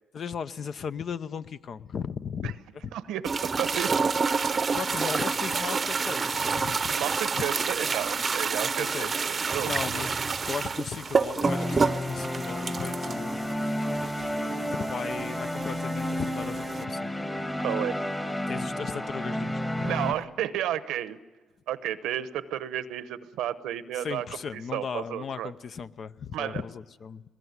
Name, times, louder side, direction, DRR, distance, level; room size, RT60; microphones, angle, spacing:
voice 1, 0.1-2.6 2.8-2.9 4.7-6.9 7.4-7.5 8.6-9.1 9.6-13.5 14.7-17.1 18.5-19.9 23.9-27.2, left 6 dB, 55° left, 13 dB, 0.7 m, -36 dB
voice 2, 2.9-3.2 3.6-3.9 4.8-4.9 6.9-9.7 17.6-18.0 19.8-21.2 21.7-25.5 26.3-26.6, right 11 dB, 90° right, 13 dB, 0.9 m, -32 dB
sound 1, 3.2-16.8, right 5 dB, 35° right, 0.7 m, -29 dB
sound 2, 11.4-20.1, left 1 dB, 15° left, 1.5 m, -31 dB
21.5 x 20.0 x 9.5 m, 1.3 s
cardioid pair, 90°, 0 cm